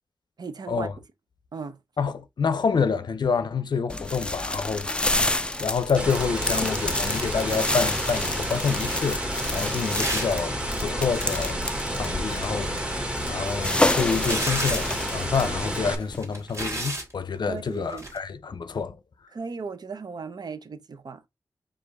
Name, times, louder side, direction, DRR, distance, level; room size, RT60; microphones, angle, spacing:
voice 1, 0.4-0.9 1.5-1.8 17.5-18.1 19.3-21.3, right 5 dB, 60° right, 0.6 m, -36 dB
voice 2, 2.0-5.3 5.6-11.6 11.9-19.0, left 5 dB, 65° left, 0.5 m, -28 dB
sound 1, 3.9-16.2, left 2 dB, 15° left, 0.4 m, -29 dB
sound 2, 6.0-16.0, equal, 10° right, 1.0 m, -30 dB
sound 3, 9.9-10.5 10.7-10.8 13.2-15.0 15.9-17.1 17.9-18.2, right 1 dB, 35° right, 1.7 m, -32 dB
4.9 x 2.5 x 3.9 m
wide cardioid pair, 125°, 8 cm